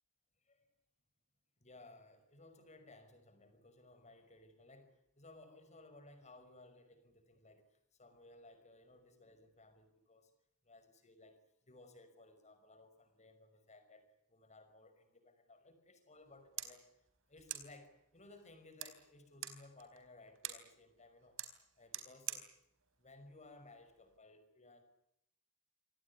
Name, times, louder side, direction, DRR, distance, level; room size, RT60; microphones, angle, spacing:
voice 1, 1.6-10.3 10.6-11.4 11.7-21.4 21.8-22.5 23.0-24.8, left 2 dB, 30° left, 9 dB, 5.6 m, -60 dB
sound 1, 16.2-24.2, right 11 dB, 60° right, 4.3 m, -50 dB
27.5 x 18.5 x 9.7 m, 0.78 s
head